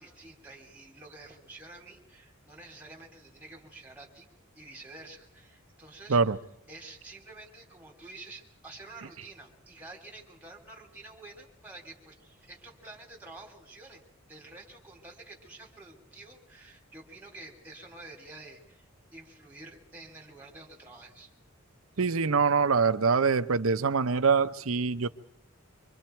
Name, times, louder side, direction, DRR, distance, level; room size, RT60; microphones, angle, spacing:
voice 1, 0.0-4.3 4.5-6.2 6.7-21.3, right 2 dB, 10° right, -1 dB, 3.2 m, -49 dB
voice 2, 22.0-25.1, right 5 dB, 80° right, 11 dB, 0.8 m, -24 dB
25.5 x 24.5 x 4.5 m, 0.75 s
head